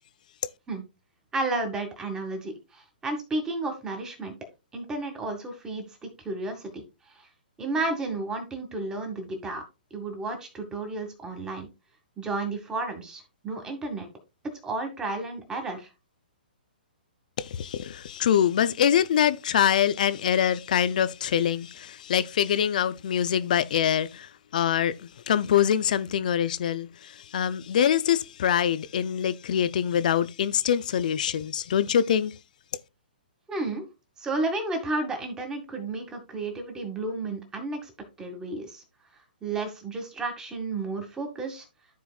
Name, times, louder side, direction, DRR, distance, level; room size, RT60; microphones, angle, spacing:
voice 1, 1.3-4.4 4.7-6.8 7.1-7.3 7.6-9.6 9.9-11.7 12.2-14.1 14.6-15.9 33.5-33.9 34.2-37.9 38.2-38.8 39.4-41.7, right 2 dB, 15° right, 2.0 m, -32 dB
voice 2, 17.4-32.4, left 9 dB, 55° left, 0.6 m, -24 dB
14.0 x 4.7 x 2.4 m
figure-of-eight pair, 120°, 5 cm